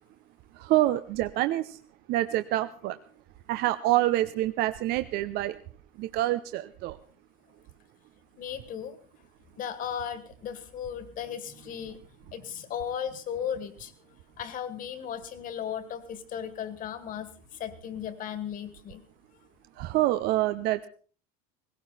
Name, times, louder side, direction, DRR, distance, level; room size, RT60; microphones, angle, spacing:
voice 1, 0.5-1.8 2.1-3.0 3.5-5.6 6.0-7.0 19.8-20.9, right 15 dB, 60° right, 0.7 m, -26 dB
voice 2, 8.4-9.0 9.6-12.0 12.3-13.9 14.4-19.0, left 8 dB, 45° left, 2.1 m, -36 dB
17.5 x 16.5 x 4.2 m
supercardioid pair, 115°, 19 cm